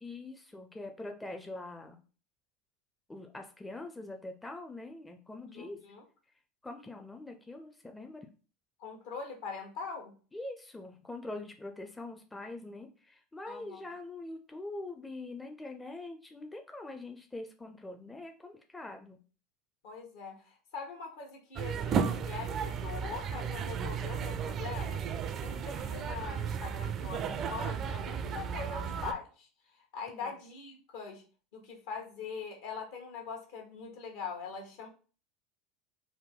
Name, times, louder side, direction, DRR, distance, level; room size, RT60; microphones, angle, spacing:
voice 1, 0.0-2.0 3.1-5.8 6.6-8.3 10.3-19.2 30.1-30.4, left 2 dB, 10° left, 4 dB, 0.5 m, -44 dB
voice 2, 5.5-6.0 8.8-10.1 13.5-13.8 19.8-25.0 25.4-29.5 29.7-31.2 31.5-34.9, left 5 dB, 70° left, 2 dB, 1.1 m, -42 dB
sound 1, 21.6-29.1, right 7 dB, 45° right, 0.4 m, -34 dB
3.5 x 2.2 x 3.6 m, 0.37 s
hypercardioid pair, 85°, 0 cm